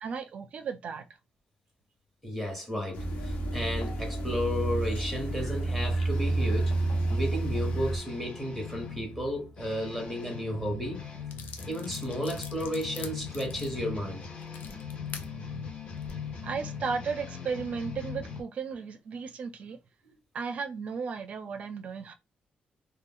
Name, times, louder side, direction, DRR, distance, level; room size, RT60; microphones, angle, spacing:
voice 1, 0.0-1.1 16.4-19.8 20.3-22.1, right 5 dB, 45° right, 0.4 m, -35 dB
voice 2, 2.2-6.7 7.1-11.0 11.7-14.2, equal, 5° left, 1.0 m, -33 dB
sound 1, 2.9-8.0, right 2 dB, 85° left, 0.9 m, -29 dB
sound 2, 6.1-18.4, left 5 dB, 35° left, 0.8 m, -40 dB
sound 3, 11.3-15.3 15.9-16.1, left 6 dB, 70° left, 0.5 m, -45 dB
2.4 x 2.2 x 3.6 m
wide cardioid pair, 175°, 3 cm